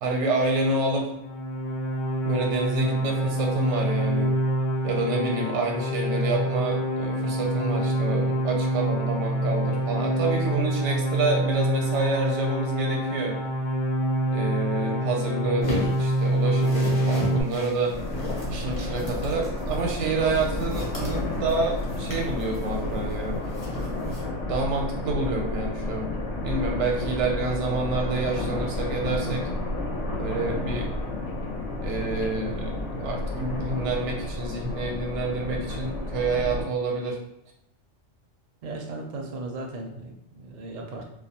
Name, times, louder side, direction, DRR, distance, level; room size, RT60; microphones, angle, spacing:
voice 1, 0.0-1.1 2.2-4.3 4.8-13.4 14.3-18.0 18.5-23.4 24.4-26.1 26.4-29.5 30.1-30.9 31.8-37.2, right 2 dB, 85° right, 1 dB, 0.9 m, -28 dB
sound 1, 1.1-17.4, right 1 dB, 50° left, 0.3 m, -26 dB
sound 2, 15.6-24.3, left 1 dB, 35° left, 0.7 m, -38 dB
sound 3, 17.9-36.6, left 2 dB, 90° left, 0.9 m, -31 dB
voice 2, 38.6-41.0, right 2 dB, 60° right, 1 dB, 0.5 m, -36 dB
2.2 x 2.2 x 2.8 m, 0.80 s
omnidirectional pair, 1.2 m